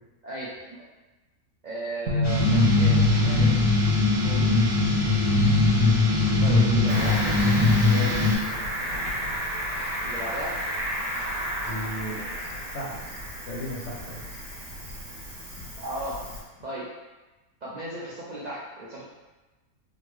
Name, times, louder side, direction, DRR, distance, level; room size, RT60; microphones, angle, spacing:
voice 1, 0.2-0.8 1.6-3.5 6.4-7.2 10.0-10.6 15.8-16.2 16.6-16.9 17.6-19.0, right 1 dB, 80° right, -7 dB, 0.3 m, -35 dB
sound 1, 2.1-6.1, equal, 60° right, 0.9 m, -31 dB
sound 2, 2.2-8.3, left 2 dB, 35° left, 0.4 m, -21 dB
Cricket, 6.9-16.4, equal, 45° right, 1.4 m, -33 dB
voice 2, 7.8-8.2 11.6-13.0 13.5-14.2 15.6-15.7, left 1 dB, 60° left, -4 dB, 0.9 m, -35 dB
3.9 x 2.1 x 3.1 m, 1.1 s
omnidirectional pair, 1.5 m